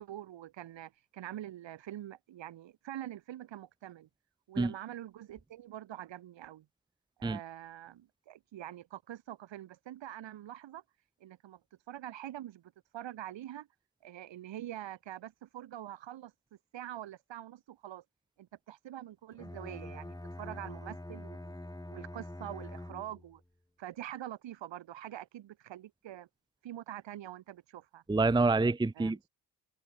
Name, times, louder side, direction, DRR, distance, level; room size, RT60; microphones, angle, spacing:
voice 1, 0.0-4.1 4.5-6.7 7.2-10.8 11.2-11.6 11.9-13.7 14.0-16.3 16.7-18.0 18.4-21.6 21.9-23.4 23.8-26.3 26.6-28.0 29.0-29.1, right 12 dB, 70° right, 5.4 m, -45 dB
Bowed string instrument, 19.3-23.4, left 1 dB, 10° left, 4.4 m, -45 dB
voice 2, 28.1-29.3, right 3 dB, 10° right, 0.8 m, -27 dB
hypercardioid pair, 45°, 46 cm